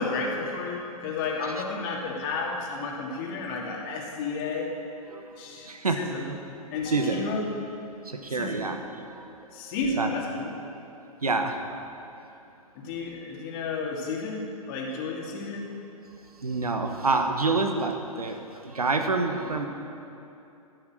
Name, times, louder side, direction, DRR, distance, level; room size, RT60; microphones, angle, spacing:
voice 1, 0.0-4.7 5.4-5.7 6.0-6.2 6.7-7.5 8.3-8.6 9.5-10.5 12.7-15.7, left 3 dB, 40° left, -1 dB, 2.6 m, -32 dB
voice 2, 5.1-6.4 6.9-7.3 8.0-8.8 9.1-9.3 10.0-10.1 11.2-11.6 16.4-19.7, right 3 dB, 80° right, 6 dB, 1.4 m, -27 dB
14.5 x 9.6 x 7.8 m, 2.8 s
figure-of-eight pair, 110°, 19 cm